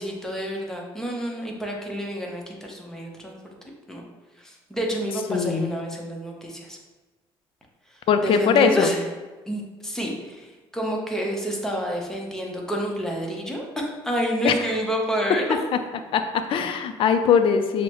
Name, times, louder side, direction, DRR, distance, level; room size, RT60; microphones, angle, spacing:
voice 1, 0.0-3.5 3.9-4.0 4.4-6.8 8.2-9.0 9.5-15.4, equal, 5° left, -1 dB, 0.8 m, -29 dB
voice 2, 5.3-5.7 8.1-8.9 14.4-14.5 16.1-17.8, left 6 dB, 60° left, 8 dB, 0.4 m, -21 dB
6.3 x 2.1 x 3.0 m, 1.3 s
cardioid pair, 95°, 10 cm